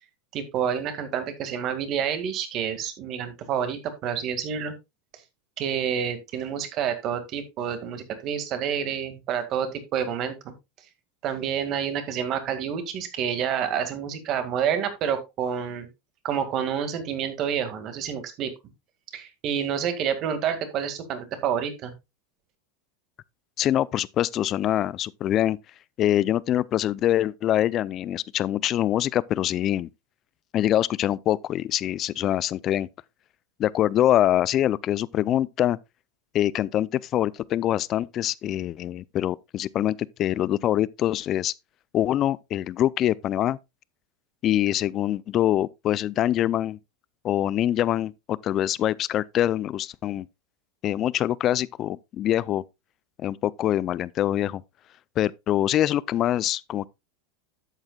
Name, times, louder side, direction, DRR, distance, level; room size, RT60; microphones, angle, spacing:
voice 1, 0.3-4.7 5.1-5.2 5.6-10.5 11.2-15.9 16.2-18.5 19.1-21.9, right 8 dB, 40° right, 2.0 m, -28 dB
voice 2, 23.6-25.6 26.0-29.9 30.5-32.9 33.6-35.8 36.3-41.5 41.9-43.6 44.4-46.8 47.2-50.3 50.8-52.6 53.2-54.6 55.2-56.9, left 12 dB, 35° left, 0.4 m, -24 dB
11.5 x 8.0 x 2.3 m
supercardioid pair, 150°, 0 cm